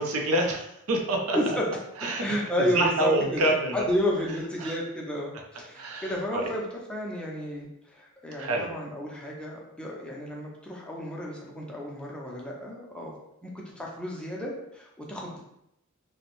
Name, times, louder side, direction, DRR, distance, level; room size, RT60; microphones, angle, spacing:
voice 1, 0.0-1.4 2.0-3.8 4.6-4.8 5.7-6.5 8.4-8.7, right 1 dB, 80° right, 1 dB, 0.5 m, -27 dB
voice 2, 1.3-1.7 2.2-13.1 13.4-15.4, left 1 dB, 5° left, -3 dB, 0.4 m, -32 dB
2.6 x 2.0 x 2.9 m, 0.81 s
head